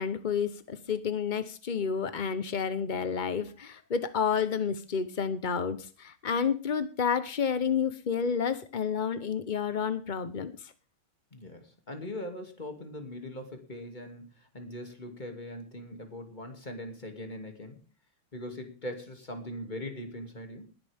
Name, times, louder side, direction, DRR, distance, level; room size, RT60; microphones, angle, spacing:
voice 1, 0.0-10.7, left 6 dB, 60° left, 12 dB, 0.4 m, -30 dB
voice 2, 11.3-17.8 18.3-20.7, left 1 dB, 20° left, 5 dB, 2.6 m, -41 dB
20.0 x 11.0 x 3.5 m, 0.35 s
omnidirectional pair, 2.3 m